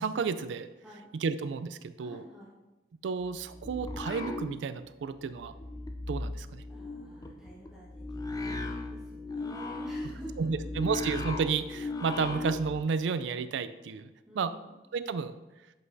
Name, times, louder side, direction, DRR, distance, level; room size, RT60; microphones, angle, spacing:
voice 1, 0.0-0.7 1.1-2.2 3.0-5.5 6.1-6.6 10.4-14.1 14.3-14.5 14.9-15.3, right 5 dB, 80° right, 13 dB, 0.3 m, -31 dB
voice 2, 2.0-2.5 6.7-10.7 14.2-14.7, equal, 5° right, -9 dB, 1.4 m, -49 dB
sound 1, 3.2-5.1 5.3-12.8, left 2 dB, 20° left, 0.4 m, -37 dB
7.5 x 5.5 x 2.6 m, 1.1 s
head